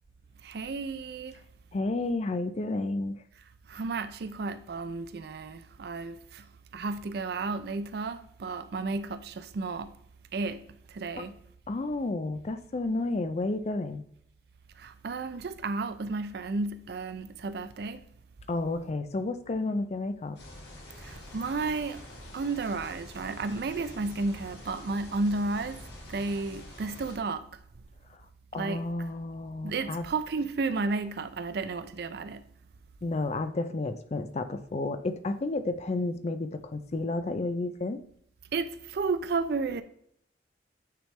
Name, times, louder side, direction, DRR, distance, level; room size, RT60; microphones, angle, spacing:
voice 1, 0.4-1.4 3.7-6.5 6.7-10.0 10.3-11.4 14.8-18.1 21.0-22.0 22.3-25.8 26.1-27.6 28.5-28.9 29.6-32.5 38.5-39.8, right 3 dB, 60° right, 0.4 m, -32 dB
voice 2, 1.7-3.2 11.2-11.3 11.7-14.0 18.5-20.4 28.5-30.1 33.0-38.0, left 2 dB, 35° left, 0.4 m, -31 dB
sound 1, 20.3-27.2, left 1 dB, 70° left, 1.7 m, -46 dB
9.0 x 3.4 x 3.2 m
head